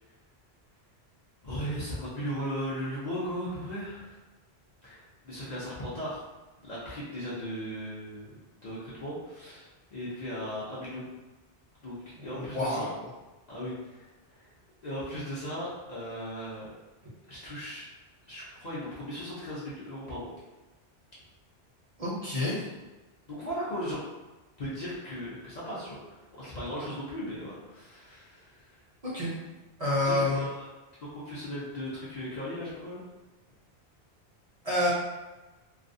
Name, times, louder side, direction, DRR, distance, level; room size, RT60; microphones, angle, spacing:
voice 1, 1.4-4.2 4.8-6.3 6.6-8.3 8.6-11.0 11.8-12.9 13.5-14.4 14.8-16.7 17.3-17.9 18.3-20.3 23.3-24.0 24.6-28.8 30.0-30.5 31.0-33.0, equal, 50° left, -8 dB, 0.6 m, -37 dB
voice 2, 12.2-13.1 22.0-22.6 29.0-29.3 29.8-30.5 34.6-34.9, left 1 dB, 40° right, -8 dB, 0.6 m, -28 dB
2.3 x 2.2 x 2.5 m, 1.2 s
omnidirectional pair, 1.1 m